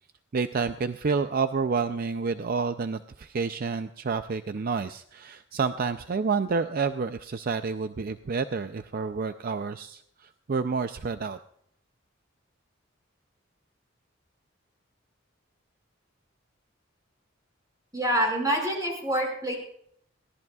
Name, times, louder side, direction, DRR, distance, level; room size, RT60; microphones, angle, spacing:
voice 1, 0.3-11.4, right 4 dB, 50° right, 10 dB, 0.4 m, -29 dB
voice 2, 17.9-19.6, equal, 20° right, 0 dB, 5.4 m, -26 dB
23.0 x 17.0 x 2.4 m, 0.68 s
head